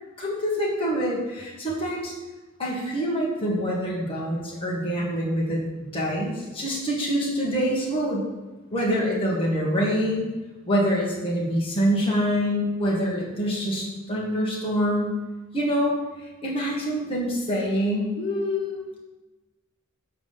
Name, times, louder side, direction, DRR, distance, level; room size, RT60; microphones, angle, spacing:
voice 1, 0.2-2.1 2.6-5.6 5.9-8.2 8.7-10.3 10.6-15.1 15.5-19.0, equal, 25° left, -5 dB, 1.6 m, -25 dB
7.6 x 5.2 x 5.5 m, 1.1 s
head